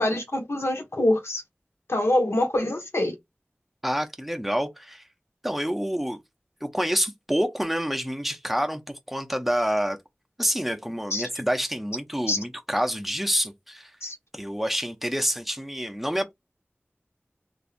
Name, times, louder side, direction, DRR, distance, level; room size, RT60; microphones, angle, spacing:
voice 1, 0.0-1.4 1.9-3.1 11.1-11.3 12.3-12.4 14.0-14.2, left 1 dB, 80° left, 0.8 m, -25 dB
voice 2, 3.8-5.0 5.4-6.2 6.6-10.0 10.4-13.9 14.3-16.3, equal, 5° right, 0.6 m, -27 dB
3.2 x 2.5 x 2.5 m
wide cardioid pair, 50°, 4 cm